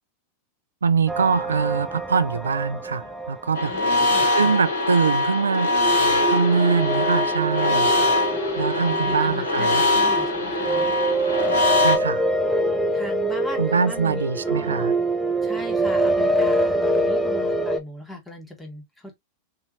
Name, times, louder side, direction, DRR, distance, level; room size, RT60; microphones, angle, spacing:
voice 1, 0.8-3.7 4.3-5.7 6.3-7.9 8.6-9.8 11.8-12.3 13.6-14.9, right 5 dB, 80° right, 0.3 m, -23 dB
sound 1, 1.1-4.5 5.7-17.8, right 1 dB, 10° right, 0.5 m, -25 dB
sound 2, 3.5-12.0, left 2 dB, 75° left, 1.3 m, -22 dB
voice 2, 3.7-4.5 8.8-11.0 12.9-14.9 15.4-19.1, equal, 10° left, 1.2 m, -39 dB
2.9 x 2.7 x 2.5 m
figure-of-eight pair, 90°, 0 cm